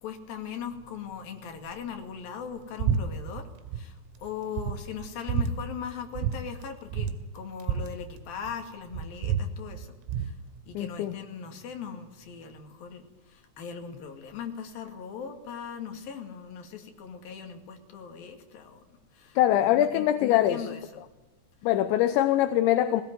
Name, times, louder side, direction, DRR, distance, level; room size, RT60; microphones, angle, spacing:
voice 1, 0.0-3.5 3.7-10.4 10.7-18.8 19.1-21.0, left 7 dB, 55° left, 4 dB, 3.6 m, -39 dB
sound 1, 2.8-3.0 3.3-3.8 4.2-4.3 4.6-5.5 6.2-6.4 6.6-6.7 6.9-8.6 8.9-10.3, right 7 dB, 85° right, 4.1 m, -29 dB
voice 2, 10.7-11.2 19.4-20.7 21.6-23.0, left 12 dB, 75° left, 11 dB, 2.8 m, -23 dB
19.5 x 17.0 x 9.3 m, 1.1 s
omnidirectional pair, 5.9 m